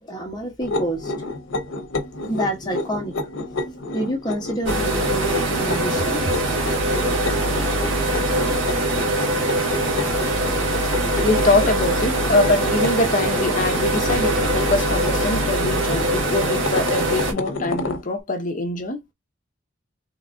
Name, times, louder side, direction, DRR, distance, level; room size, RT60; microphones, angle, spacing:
voice 1, 0.0-1.1 2.3-3.2 3.9-6.2, right 1 dB, 20° left, 1.1 m, -28 dB
sound 1, 0.6-18.0, left 2 dB, 85° left, 0.8 m, -30 dB
sound 2, 4.7-17.3, right 1 dB, 85° right, 1.4 m, -22 dB
voice 2, 11.2-19.0, left 2 dB, 40° left, 0.8 m, -23 dB
3.9 x 3.2 x 2.6 m
head